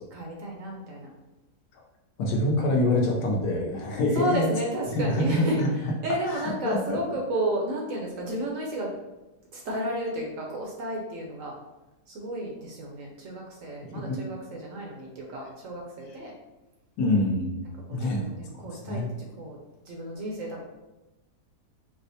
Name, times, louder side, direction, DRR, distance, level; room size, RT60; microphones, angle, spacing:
voice 1, 0.1-1.1 4.2-5.6 6.0-8.9 9.5-11.5 12.1-16.3 17.9-19.0 19.4-19.6 19.9-20.6, right 1 dB, 65° right, -1 dB, 0.9 m, -32 dB
voice 2, 2.2-4.5 4.9-5.9 6.3-7.0 13.8-14.2 16.1-16.2 17.0-17.6 17.9-18.3 18.9-19.1, left 1 dB, 80° left, 0 dB, 1.3 m, -26 dB
4.7 x 2.1 x 2.7 m, 1.0 s
omnidirectional pair, 1.7 m